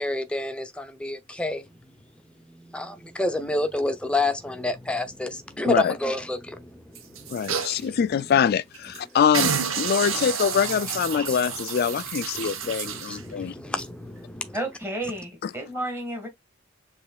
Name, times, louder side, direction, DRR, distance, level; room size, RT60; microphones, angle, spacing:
voice 1, 0.0-1.8 2.4-8.0 10.1-10.3 11.1-11.4 12.3-14.6, left 2 dB, 5° left, 0.6 m, -30 dB
sound 1, 6.9-7.8 8.3-8.4 8.7-9.0 9.3-13.2 13.8-13.9, right 7 dB, 75° right, 0.9 m, -30 dB
voice 2, 7.3-13.5, left 7 dB, 50° left, 0.3 m, -24 dB
voice 3, 14.5-16.3, right 1 dB, 10° right, 1.7 m, -31 dB
6.7 x 3.2 x 2.3 m
head